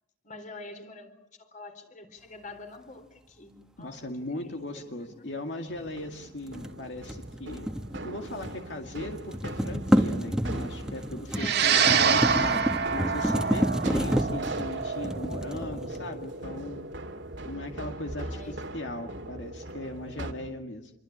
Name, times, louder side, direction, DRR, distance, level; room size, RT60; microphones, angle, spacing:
voice 1, 0.2-5.1 11.3-12.1 18.2-18.5, left 2 dB, 45° left, 7 dB, 4.0 m, -46 dB
voice 2, 3.8-7.7 8.0-16.9 17.4-20.9, left 1 dB, 75° left, 4 dB, 2.2 m, -38 dB
sound 1, 5.7-20.3, right 1 dB, 90° right, 2.5 m, -41 dB
sound 2, 6.4-8.7 9.0-16.3, equal, 5° right, 1.5 m, -29 dB
sound 3, 11.4-19.9, right 6 dB, 65° right, 2.0 m, -28 dB
27.5 x 24.0 x 8.7 m, 0.86 s
head